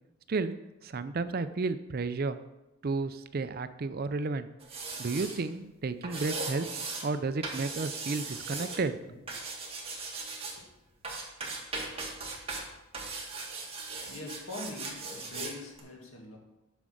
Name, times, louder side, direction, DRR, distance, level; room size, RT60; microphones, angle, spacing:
voice 1, 0.8-2.4 2.8-4.5 5.0-6.7 7.0-9.0, right 3 dB, 45° right, 12 dB, 0.5 m, -32 dB
sound 1, 4.6-5.4 6.0-7.1 7.4-8.8 9.3-10.6 11.0-12.6 12.9-15.5 15.8-15.9, right 3 dB, 30° right, 1.9 m, -38 dB
voice 2, 13.9-16.4, left 2 dB, 90° left, 0 dB, 2.1 m, -43 dB
9.2 x 5.2 x 6.4 m, 0.99 s
head